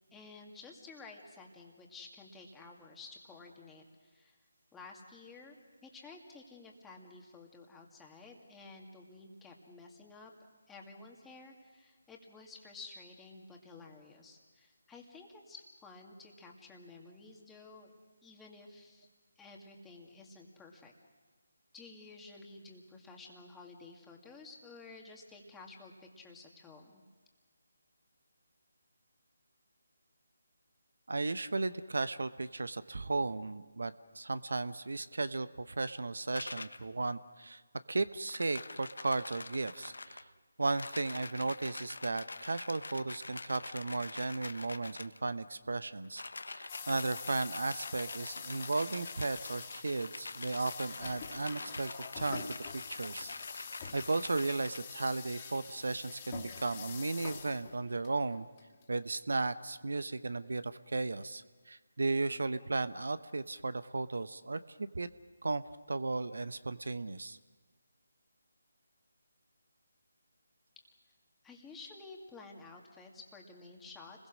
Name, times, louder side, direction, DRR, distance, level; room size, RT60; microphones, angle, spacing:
voice 1, 0.1-4.4 4.7-5.6 5.8-10.3 10.7-17.9 18.2-19.1 19.4-20.9 21.7-27.0 71.4-74.3, left 3 dB, 5° left, 0 dB, 2.3 m, -52 dB
voice 2, 31.1-37.6 37.9-40.3 40.6-46.2 46.5-53.3 53.6-58.5 58.9-65.1 65.4-65.6 65.9-67.4, right 3 dB, 75° right, 14 dB, 0.9 m, -35 dB
sound 1, 36.3-36.8 38.0-40.3 40.6-45.2 46.0-54.8, left 3 dB, 75° left, 1.1 m, -46 dB
sound 2, 46.7-59.4, left 6 dB, 30° left, 2.8 m, -46 dB
29.5 x 21.5 x 6.3 m, 1.4 s
figure-of-eight pair, 160°, 0 cm